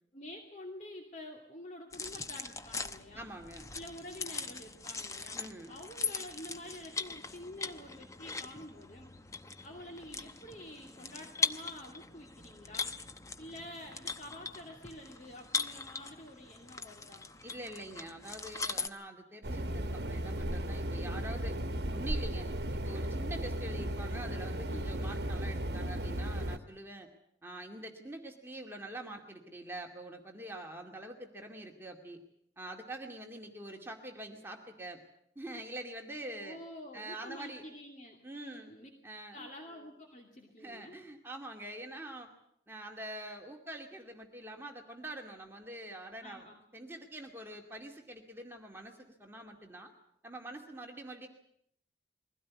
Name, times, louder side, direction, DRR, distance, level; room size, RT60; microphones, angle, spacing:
voice 1, 0.1-3.3 3.7-9.1 9.6-12.9 13.4-17.3 24.7-25.0 36.4-38.9 39.3-40.9 46.2-46.6, left 1 dB, 45° left, 1 dB, 2.5 m, -48 dB
sound 1, 1.9-18.9, left 4 dB, 20° left, 0.8 m, -40 dB
voice 2, 3.1-3.7 5.3-5.7 17.4-21.6 21.9-22.5 22.8-27.1 27.4-32.2 32.6-35.0 35.4-36.6 36.9-37.6 38.2-38.7 39.0-39.5 40.6-42.3 42.7-46.5 46.7-49.9 50.2-51.3, right 1 dB, 15° right, 2 dB, 2.3 m, -45 dB
sound 2, 19.4-26.6, right 1 dB, 75° right, 1.2 m, -35 dB
22.5 x 16.5 x 9.5 m, 0.73 s
head